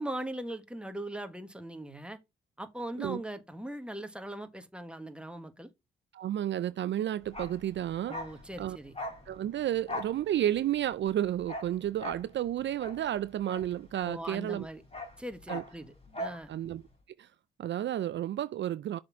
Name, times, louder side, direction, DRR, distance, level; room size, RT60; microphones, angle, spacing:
voice 1, 0.0-2.2 2.6-5.7 8.1-8.9 14.0-14.8 15.2-15.9 16.2-16.5, right 1 dB, 5° right, 1.5 m, -40 dB
voice 2, 6.1-8.2 8.6-8.8 9.3-14.7 15.5-15.6 16.5-16.8 17.2-17.3 17.6-19.0, right 11 dB, 65° right, 0.4 m, -31 dB
Bark, 7.2-14.3 14.5-16.5 16.7-16.9, left 1 dB, 30° left, 3.5 m, -41 dB
6.5 x 4.3 x 4.7 m
cardioid pair, 60°, 20 cm